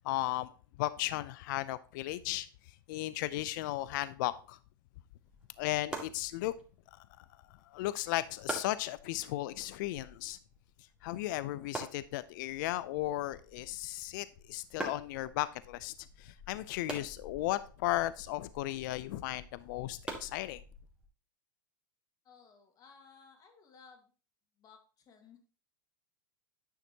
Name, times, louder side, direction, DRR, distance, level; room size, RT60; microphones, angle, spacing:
voice 1, 0.0-0.5 0.8-2.5 2.9-4.6 5.6-6.5 7.2-7.3 7.7-10.4 11.0-20.6, left 16 dB, 60° left, 0.5 m, -35 dB
sound 1, 5.2-21.1, right 1 dB, 10° right, 2.1 m, -47 dB
voice 2, 22.2-24.1 24.6-25.4, left 5 dB, 35° left, 2.1 m, -58 dB
10.0 x 5.8 x 2.9 m
hypercardioid pair, 110°, 11 cm